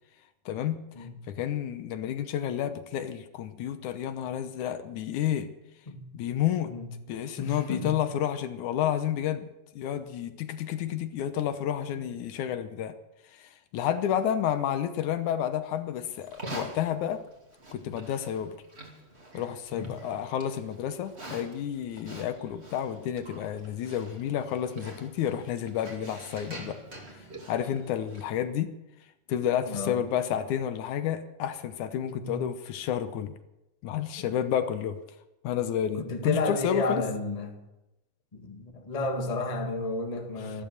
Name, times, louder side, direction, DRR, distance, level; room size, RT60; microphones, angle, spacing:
voice 1, 0.5-5.5 6.1-6.7 7.1-9.5 9.8-12.9 13.3-17.2 17.7-18.6 19.3-26.8 27.5-28.7 29.3-33.3 33.8-35.0 35.4-37.0, left 10 dB, 75° left, 2.3 m, -30 dB
voice 2, 6.7-7.1 7.4-8.0 11.9-12.0 19.7-20.0 29.6-30.0 32.1-32.4 34.2-34.3 36.0-37.6 38.3-40.6, left 2 dB, 20° left, 1.1 m, -32 dB
Livestock farm animals working animals, 16.2-28.4, right 1 dB, 20° right, 2.5 m, -46 dB
14.0 x 14.0 x 6.7 m
omnidirectional pair, 3.6 m